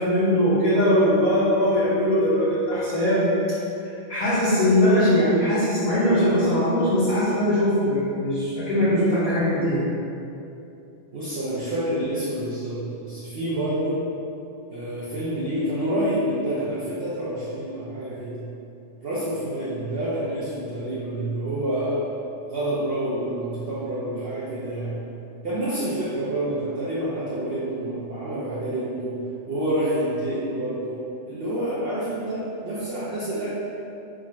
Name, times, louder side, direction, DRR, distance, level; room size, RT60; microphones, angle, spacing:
voice 1, 0.0-3.3 4.1-9.8, equal, 35° left, -11 dB, 0.8 m, -20 dB
voice 2, 11.1-14.0 14.7-18.4 19.0-22.0 22.4-25.0 25.4-29.2 29.5-31.0 31.3-33.5, right 1 dB, 55° right, -10 dB, 0.8 m, -28 dB
3.8 x 2.5 x 4.1 m, 2.7 s
omnidirectional pair, 1.3 m